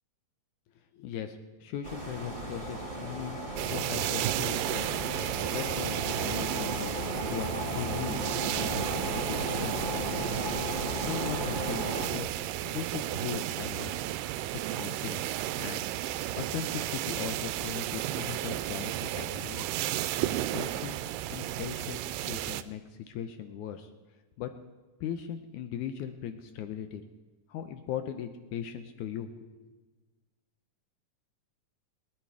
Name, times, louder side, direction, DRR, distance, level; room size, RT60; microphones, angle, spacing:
voice 1, 0.9-3.4 3.7-5.1 5.5-8.2 8.6-10.3 10.9-12.3 12.7-14.0 14.3-14.4 14.7-15.3 15.6-16.0 16.3-19.7 20.5-23.9 24.4-24.5 25.0-27.0 27.5-29.8, left 9 dB, 75° left, 8 dB, 1.9 m, -39 dB
sound 1, 1.8-12.1, right 1 dB, 25° right, 1.8 m, -35 dB
sound 2, 3.6-22.6, right 13 dB, 85° right, 2.2 m, -33 dB
21.5 x 10.5 x 4.7 m, 1.3 s
omnidirectional pair, 3.9 m